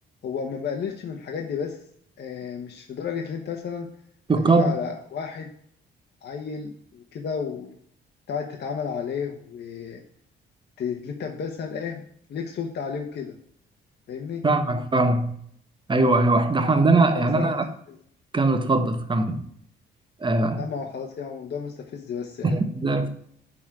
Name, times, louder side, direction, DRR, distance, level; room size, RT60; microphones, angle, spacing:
voice 1, 0.2-1.8 2.2-3.9 4.4-5.5 6.2-7.7 8.3-10.0 10.8-13.4 14.1-14.4 17.1-17.6 17.9-18.0 20.6-22.6, left 6 dB, 60° left, 2 dB, 1.1 m, -32 dB
voice 2, 4.3-4.7 14.4-15.3 15.9-17.6 18.3-19.4 20.2-20.6 22.4-23.1, right 2 dB, 25° right, 7 dB, 1.3 m, -21 dB
10.5 x 3.8 x 5.9 m, 0.67 s
cardioid pair, 90°, 20 cm